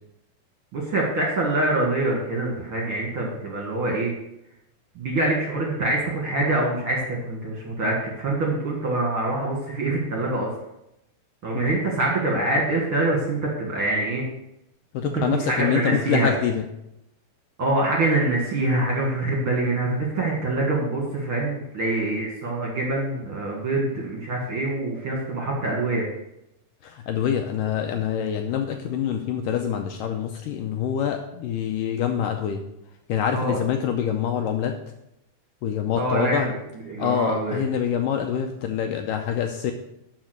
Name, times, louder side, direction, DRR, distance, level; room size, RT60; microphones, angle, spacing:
voice 1, 0.7-4.1 5.0-10.5 11.4-14.2 15.1-16.3 17.6-26.1 33.3-33.6 36.0-36.5 36.9-37.6, right 2 dB, 50° right, -1 dB, 1.8 m, -25 dB
voice 2, 14.9-16.6 26.8-32.6 33.1-34.7 35.6-36.5 37.0-39.7, left 9 dB, 80° left, 4 dB, 2.0 m, -25 dB
12.0 x 4.6 x 6.4 m, 0.84 s
omnidirectional pair, 4.4 m